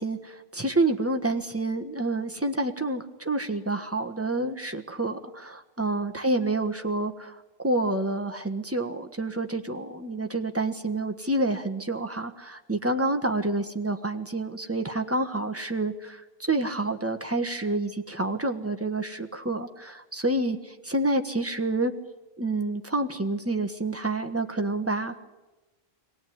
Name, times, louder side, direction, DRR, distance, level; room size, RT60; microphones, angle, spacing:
voice 1, 0.0-7.4 7.6-21.9 22.4-25.2, right 2 dB, 15° right, 6 dB, 1.3 m, -28 dB
22.5 x 18.0 x 9.4 m, 1.1 s
omnidirectional pair, 1.0 m